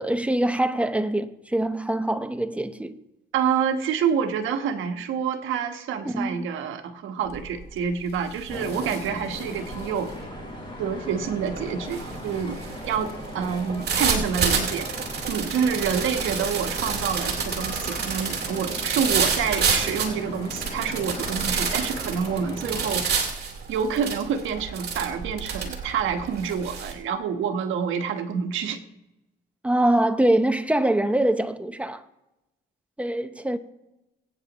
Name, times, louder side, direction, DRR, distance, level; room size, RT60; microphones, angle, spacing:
voice 1, 0.0-3.0 6.1-6.5 29.6-32.0 33.0-33.6, right 1 dB, 5° right, 0.8 m, -24 dB
voice 2, 3.3-10.1 10.8-12.6 12.9-15.0 15.3-23.1 23.7-28.8, right 7 dB, 80° right, 1.2 m, -27 dB
sound 1, 7.3-7.6 8.0-26.9, right 6 dB, 55° right, 2.4 m, -29 dB
sound 2, 8.5-23.0, left 1 dB, 25° left, 4.4 m, -38 dB
22.5 x 9.0 x 3.0 m
cardioid pair, 90°, 20 cm